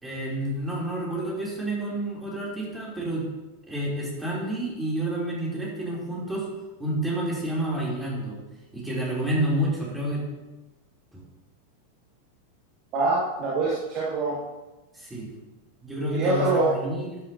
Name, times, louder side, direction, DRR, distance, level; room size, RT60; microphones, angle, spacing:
voice 1, 0.0-3.2 3.7-6.5 6.8-8.4 8.7-10.2 11.1-11.2 14.9-15.3 15.8-17.2, right 1 dB, 10° right, -5 dB, 3.4 m, -29 dB
voice 2, 12.9-14.4 16.1-16.8, right 3 dB, 35° right, -4 dB, 1.7 m, -24 dB
12.5 x 9.2 x 2.9 m, 1.1 s
figure-of-eight pair, 90°, 0 cm